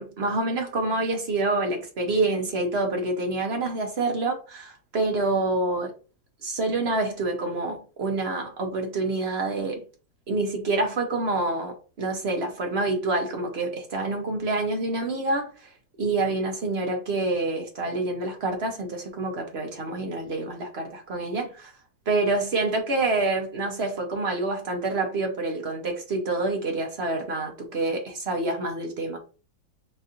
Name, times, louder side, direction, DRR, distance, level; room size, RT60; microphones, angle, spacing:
voice 1, 0.0-5.9 6.4-9.8 10.3-15.7 16.0-21.7 22.1-29.2, right 2 dB, 50° right, 0.8 m, -27 dB
5.2 x 2.7 x 2.5 m
omnidirectional pair, 2.0 m